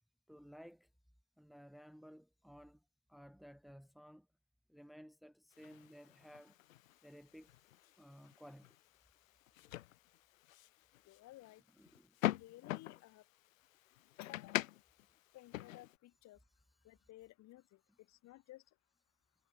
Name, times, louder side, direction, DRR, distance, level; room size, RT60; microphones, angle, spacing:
voice 1, 0.3-0.9 1.4-2.8 3.1-4.3 4.7-6.6 7.0-7.6 7.9-8.8 11.8-12.2, equal, ahead, 3.2 m, -57 dB
sound 1, 5.5-16.0, left 15 dB, 60° left, 1.1 m, -45 dB
voice 2, 11.1-11.6 12.3-13.2 14.2-14.7 15.3-16.4 16.8-17.8 18.1-18.6, left 16 dB, 35° left, 7.7 m, -56 dB
hypercardioid pair, 105°, 46 cm